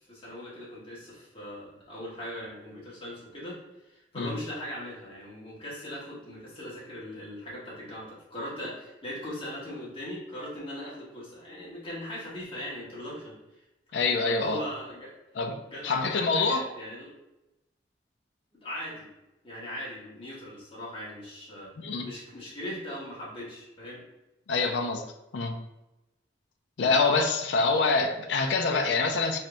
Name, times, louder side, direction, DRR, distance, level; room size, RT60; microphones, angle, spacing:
voice 1, 0.1-3.6 3.9-13.6 14.2-15.1 15.7-17.1 18.6-19.1 19.4-21.7 22.0-24.0, equal, 30° left, -6 dB, 1.4 m, -39 dB
voice 2, 13.9-14.6 15.4-15.6 15.8-16.7 21.8-22.1 24.5-25.0 25.3-25.5 26.8-29.4, left 4 dB, 85° left, 4 dB, 0.5 m, -25 dB
4.2 x 3.3 x 2.5 m, 0.96 s
head